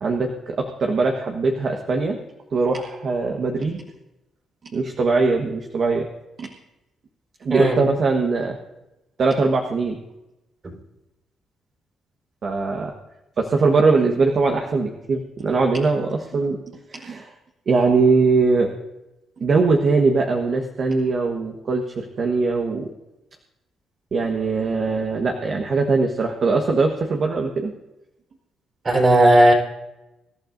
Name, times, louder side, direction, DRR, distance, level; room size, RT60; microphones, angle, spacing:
voice 1, 0.0-2.2 2.5-3.8 4.7-6.1 6.4-6.5 7.4-8.6 9.2-10.0 12.4-12.9 13.4-16.6 16.9-17.3 17.7-18.7 19.4-22.9 24.1-27.7, right 4 dB, 50° right, 2 dB, 1.3 m, -21 dB
voice 2, 28.8-29.5, right 1 dB, 35° right, 2 dB, 4.1 m, -14 dB
24.5 x 11.5 x 2.6 m, 0.96 s
cardioid pair, 90°, 0 cm